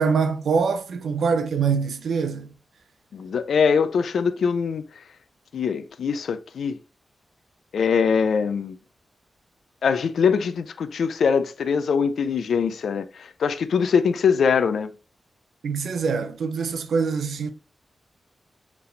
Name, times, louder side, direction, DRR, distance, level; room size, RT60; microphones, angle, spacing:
voice 1, 0.0-2.5 15.6-17.5, right 5 dB, 85° right, 0.6 m, -24 dB
voice 2, 3.1-4.8 5.5-6.8 7.7-8.8 9.8-14.9, left 6 dB, 90° left, 0.4 m, -22 dB
4.6 x 3.4 x 3.2 m
wide cardioid pair, 145°, 0 cm